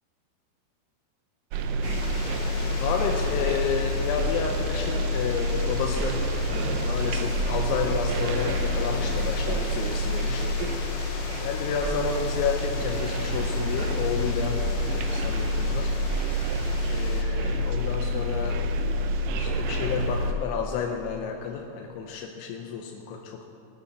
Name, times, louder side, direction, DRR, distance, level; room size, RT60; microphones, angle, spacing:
sound 1, 1.5-20.3, equal, 80° right, 3.1 m, -27 dB
sound 2, 1.8-17.2, left 3 dB, 65° left, 3.2 m, -39 dB
voice 1, 2.8-10.5 11.4-15.9 16.9-18.6 19.4-23.5, left 7 dB, 80° left, 2 dB, 3.1 m, -31 dB
20.0 x 13.0 x 4.0 m, 2.6 s
omnidirectional pair, 5.4 m